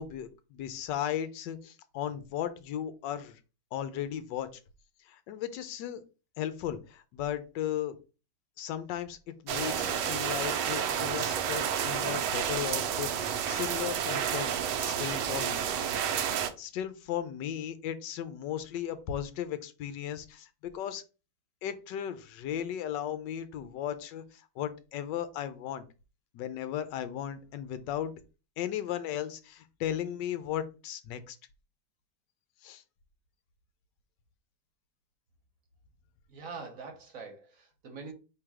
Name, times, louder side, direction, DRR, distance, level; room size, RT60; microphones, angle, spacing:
voice 1, 0.0-3.4 3.7-4.5 5.1-6.0 6.4-8.0 8.6-9.2 9.4-14.5 14.8-15.6 16.3-21.0 21.6-25.8 26.3-28.1 28.6-31.4 32.6-32.8, left 10 dB, 80° left, 1.3 m, -36 dB
sound 1, 9.5-16.5, right 8 dB, 80° right, 1.2 m, -30 dB
voice 2, 36.3-38.1, right 4 dB, 55° right, 1.2 m, -44 dB
3.8 x 2.8 x 4.7 m
omnidirectional pair, 1.9 m